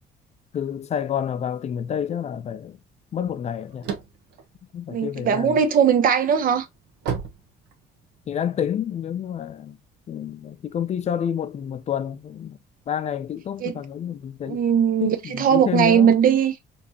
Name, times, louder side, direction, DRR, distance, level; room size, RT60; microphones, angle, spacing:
voice 1, 0.5-2.8 3.1-3.9 4.7-5.6 8.3-9.8 10.1-12.6 12.9-14.6 15.0-16.1, left 9 dB, 40° left, 0.5 m, -28 dB
sound 1, 3.6-5.5 6.0-8.2, right 7 dB, 85° right, 1.1 m, -33 dB
voice 2, 4.9-6.7 13.6-13.8 14.5-16.5, right 8 dB, 55° right, 0.8 m, -19 dB
4.3 x 2.9 x 2.7 m
cardioid pair, 110°, 17 cm